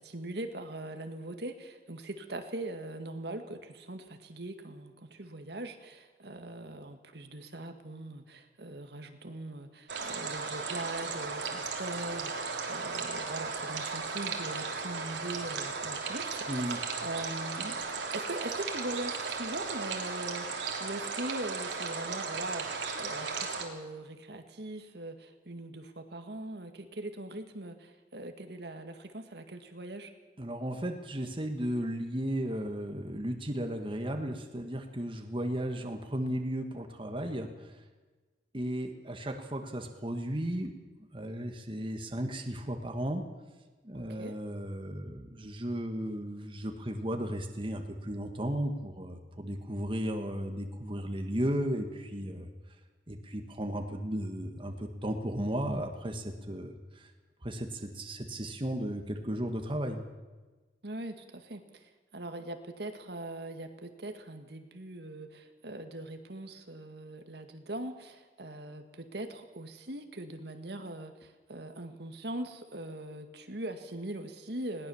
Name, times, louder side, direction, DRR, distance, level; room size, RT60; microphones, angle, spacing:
voice 1, 0.0-17.8 18.1-30.1 43.9-44.4 60.8-74.9, right 1 dB, 65° right, 6 dB, 1.9 m, -41 dB
sound 1, 9.9-23.6, right 4 dB, 85° right, 3.2 m, -36 dB
voice 2, 16.5-16.8 30.4-37.7 38.5-40.7 41.1-43.2 43.8-52.5 53.1-57.1 57.4-60.0, equal, 30° right, 5 dB, 1.6 m, -35 dB
20.5 x 18.0 x 7.2 m, 1.3 s
head